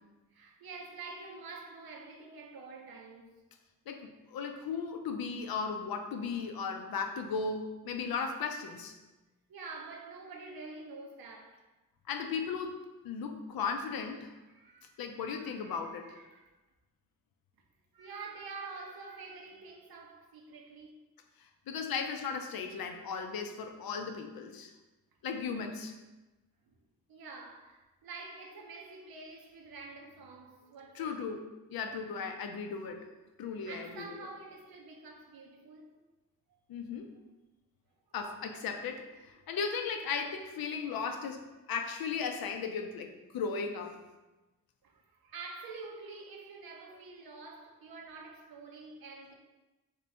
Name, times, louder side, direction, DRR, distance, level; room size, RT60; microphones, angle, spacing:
voice 1, 0.0-3.3 6.4-6.8 9.5-11.7 14.5-15.0 15.3-16.5 17.9-20.9 26.7-26.8 27.1-31.2 33.7-35.9 36.5-36.6 39.5-39.6 44.8-49.3, right 4 dB, 85° right, 0.7 m, -47 dB
voice 2, 3.9-8.9 12.1-12.7 13.0-14.3 15.0-16.1 21.7-24.7 25.2-25.9 30.9-31.4 31.7-33.0 33.4-34.2 36.7-37.1 38.1-41.4 41.7-44.0, left 5 dB, 80° left, 0.5 m, -36 dB
3.2 x 3.0 x 3.3 m
cardioid pair, 45°, 36 cm